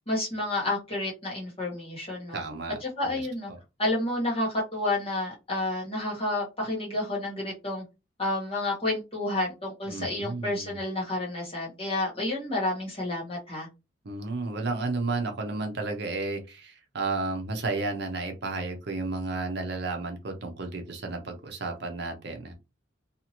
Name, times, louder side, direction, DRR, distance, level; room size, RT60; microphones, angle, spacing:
voice 1, 0.1-2.4 2.8-3.5 3.8-7.8 8.2-13.7, left 2 dB, 30° left, -4 dB, 1.4 m, -30 dB
voice 2, 2.3-2.8 3.0-3.2 9.9-10.7 14.0-22.5, right 3 dB, 55° right, 4 dB, 0.7 m, -32 dB
2.8 x 2.4 x 2.9 m, 0.26 s
head